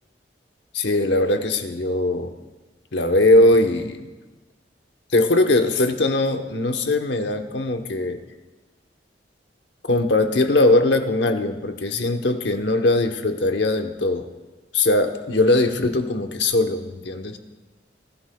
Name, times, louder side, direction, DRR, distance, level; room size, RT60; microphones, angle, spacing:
voice 1, 0.7-2.3 2.9-4.0 5.1-8.2 9.9-14.3 14.7-17.4, left 2 dB, 75° left, 6 dB, 1.0 m, -20 dB
23.5 x 13.0 x 2.3 m, 1.2 s
head